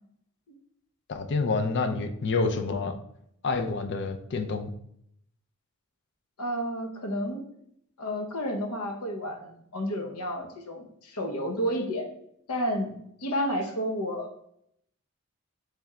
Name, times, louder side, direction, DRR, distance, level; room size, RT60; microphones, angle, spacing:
voice 1, 1.1-3.0 3.4-4.7, left 3 dB, 55° left, 7 dB, 0.5 m, -28 dB
voice 2, 6.4-7.5 8.0-12.1 12.5-14.3, equal, 80° left, 3 dB, 0.8 m, -31 dB
4.3 x 3.4 x 3.6 m, 0.71 s
head